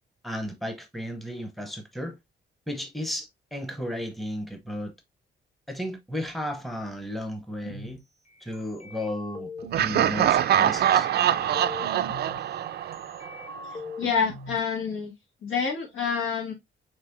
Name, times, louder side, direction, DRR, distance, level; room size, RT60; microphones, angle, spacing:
voice 1, 0.2-2.2 2.7-4.9 5.7-8.0 8.4-11.1, equal, ahead, 0.8 m, -34 dB
sound 1, 7.6-8.0 8.5-10.2 10.7-12.4 12.9-14.6, left 2 dB, 35° left, 1.3 m, -40 dB
Laughter, 9.7-13.6, right 10 dB, 55° right, 0.4 m, -24 dB
voice 2, 13.6-15.1 15.4-16.5, left 6 dB, 90° left, 2.0 m, -28 dB
5.4 x 3.2 x 2.5 m
cardioid pair, 130°, 20 cm